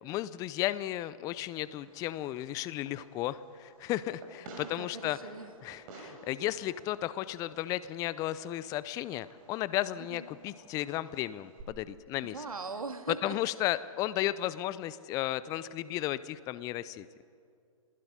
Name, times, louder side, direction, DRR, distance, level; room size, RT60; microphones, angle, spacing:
voice 1, 0.0-5.2 5.6-12.3 13.2-17.1, left 14 dB, 20° left, 16 dB, 0.6 m, -34 dB
Fireworks, 1.6-11.6, right 3 dB, 35° right, 5.3 m, -54 dB
voice 2, 4.7-5.5 10.0-10.3 12.2-13.4, right 4 dB, 75° right, 6 dB, 2.6 m, -40 dB
25.5 x 19.5 x 9.7 m, 2.4 s
figure-of-eight pair, 125°, 18 cm